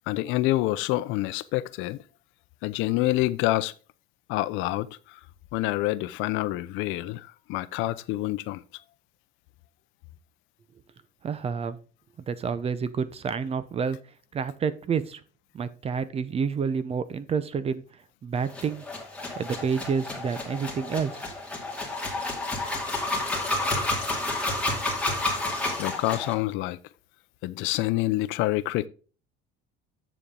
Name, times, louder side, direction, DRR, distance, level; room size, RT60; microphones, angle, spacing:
voice 1, 0.1-2.0 2.6-3.7 4.3-5.2 5.5-8.6 25.8-26.8 27.4-28.9, left 17 dB, 70° left, 0.6 m, -27 dB
voice 2, 11.2-11.8 12.3-14.0 14.3-15.2 15.5-17.8 18.2-18.8 19.4-21.2, right 6 dB, 30° right, 0.6 m, -29 dB
sound 1, 18.5-26.3, left 2 dB, 5° left, 2.4 m, -30 dB
7.2 x 7.0 x 3.8 m
cardioid pair, 135°, 21 cm